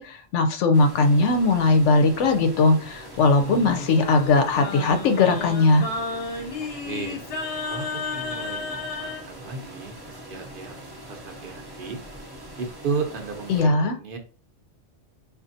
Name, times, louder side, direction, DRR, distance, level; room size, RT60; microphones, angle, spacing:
voice 1, 0.0-5.9 13.5-14.0, left 3 dB, 75° left, 6 dB, 0.9 m, -19 dB
sound 1, 0.7-13.6, right 1 dB, 25° right, 0.5 m, -42 dB
Singing, 3.2-9.2, left 3 dB, 40° left, 0.5 m, -32 dB
voice 2, 6.6-7.2 7.7-7.9 8.1-12.0 12.6-14.2, right 5 dB, 50° right, 4 dB, 0.9 m, -34 dB
4.9 x 2.5 x 2.6 m, 0.37 s
omnidirectional pair, 1.2 m